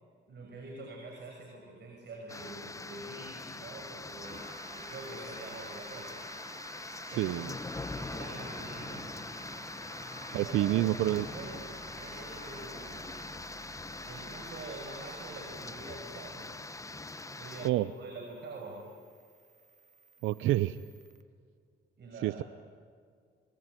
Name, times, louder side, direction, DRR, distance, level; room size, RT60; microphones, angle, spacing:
voice 1, 0.3-6.2 7.1-7.5 7.9-9.1 10.3-11.7 12.0-13.1 14.0-16.6 17.4-18.9 22.0-22.4, right 2 dB, 60° right, 1 dB, 6.3 m, -46 dB
sound 1, 2.3-17.7, left 3 dB, 15° left, 1.1 m, -43 dB
sound 2, 4.2-21.2, right 4 dB, 35° right, 1.9 m, -52 dB
voice 2, 7.1-7.5 10.3-11.3 17.6-17.9 20.2-20.8 22.2-22.4, right 15 dB, 90° right, 15 dB, 0.7 m, -28 dB
24.5 x 23.5 x 9.7 m, 2.2 s
cardioid pair, 90°, 20 cm